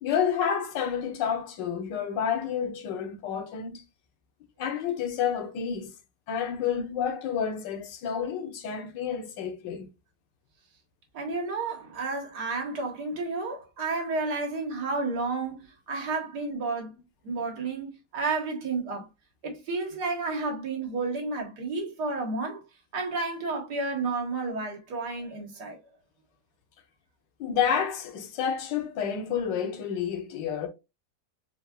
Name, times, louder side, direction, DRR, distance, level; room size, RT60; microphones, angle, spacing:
voice 1, 0.0-3.8 4.6-5.9 6.3-9.9 27.4-30.7, left 7 dB, 85° left, 1.5 m, -29 dB
voice 2, 11.1-16.9 17.2-19.1 19.4-22.6 22.9-25.8, right 3 dB, 65° right, 1.8 m, -31 dB
4.3 x 3.7 x 2.3 m
omnidirectional pair, 1.9 m